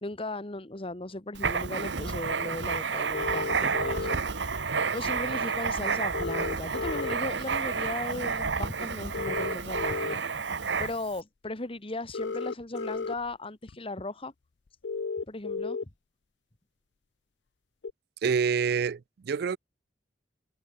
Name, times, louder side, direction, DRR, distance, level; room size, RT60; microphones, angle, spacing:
voice 1, 0.0-4.2 4.9-10.2 10.8-14.3 15.3-15.8, left 2 dB, 30° left, 1.7 m, -37 dB
Writing, 1.3-11.2, right 5 dB, 85° right, 1.4 m, -30 dB
sound 1, 3.1-4.2 6.1-7.2 9.1-10.1 12.1-13.1 13.7-13.8 14.8-15.8 17.8-17.9, left 4 dB, 75° left, 0.6 m, -33 dB
voice 2, 18.2-19.6, right 6 dB, 60° right, 0.4 m, -27 dB
head